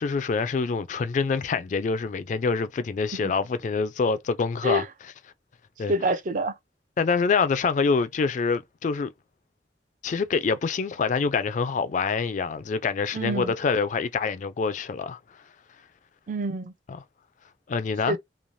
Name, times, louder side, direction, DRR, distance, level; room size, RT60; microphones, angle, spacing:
voice 1, 0.0-4.8 5.8-5.9 7.0-9.1 10.0-15.4 16.9-17.0 17.7-18.2, left 5 dB, 45° left, 0.3 m, -26 dB
voice 2, 5.9-6.5 13.1-13.5 16.3-16.7 18.1-18.2, right 1 dB, 45° right, 0.4 m, -26 dB
3.1 x 2.0 x 2.6 m
head